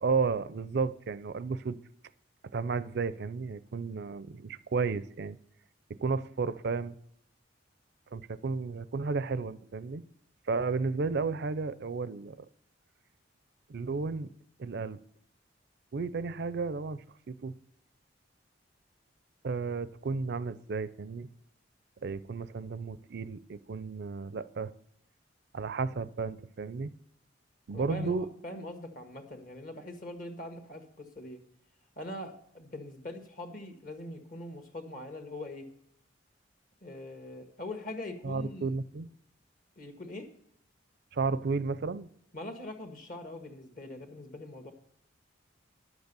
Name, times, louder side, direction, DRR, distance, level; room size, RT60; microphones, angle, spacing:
voice 1, 0.0-1.8 2.5-5.4 6.0-6.9 8.1-10.0 10.5-12.5 13.7-14.3 14.6-15.0 15.9-17.5 19.4-21.3 22.0-24.7 25.5-26.9 27.7-28.3 38.2-39.1 41.1-42.1, right 4 dB, 60° right, 16 dB, 0.5 m, -33 dB
voice 2, 27.7-31.4 32.0-35.7 36.8-38.7 39.8-40.3 42.3-44.7, left 1 dB, 45° left, 5 dB, 1.7 m, -42 dB
11.0 x 8.0 x 6.8 m, 0.67 s
head